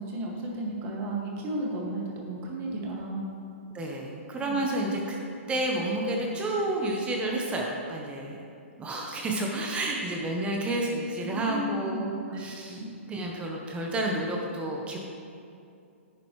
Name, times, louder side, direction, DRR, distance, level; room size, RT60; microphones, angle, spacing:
voice 1, 0.0-3.3 4.5-4.7 11.3-12.9, right 1 dB, 30° right, -2 dB, 1.9 m, -34 dB
voice 2, 3.7-5.2 5.5-8.4 8.8-12.1 12.4-12.8 13.1-15.0, right 1 dB, 15° right, 0 dB, 0.9 m, -30 dB
10.5 x 8.4 x 3.2 m, 2.5 s
hypercardioid pair, 140°, 7 cm